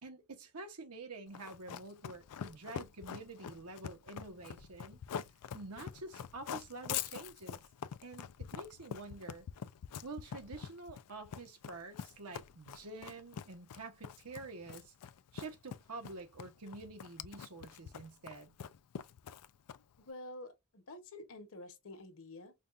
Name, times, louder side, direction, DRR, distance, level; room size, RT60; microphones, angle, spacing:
voice 1, 0.0-5.0 5.5-7.6 8.0-9.5 10.0-14.9 15.3-18.5, right 3 dB, 80° right, 1.0 m, -48 dB
Run, 1.3-20.0, left 8 dB, 85° left, 0.4 m, -44 dB
voice 2, 20.0-22.5, left 2 dB, 65° left, 1.2 m, -49 dB
5.2 x 2.3 x 2.5 m
head